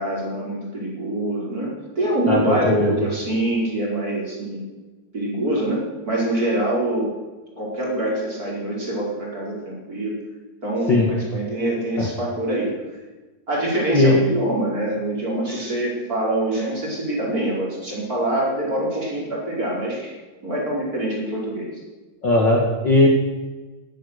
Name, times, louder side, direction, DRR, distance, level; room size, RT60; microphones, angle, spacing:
voice 1, 0.0-4.6 5.1-7.1 7.6-10.2 10.6-12.7 13.5-20.1 20.4-21.7, right 1 dB, 25° right, -4 dB, 5.1 m, -25 dB
voice 2, 2.3-2.9 10.9-11.1 12.0-12.1 13.9-14.2 22.2-23.1, left 2 dB, 35° left, -1 dB, 2.3 m, -17 dB
18.5 x 12.0 x 6.7 m, 1.2 s
omnidirectional pair, 3.9 m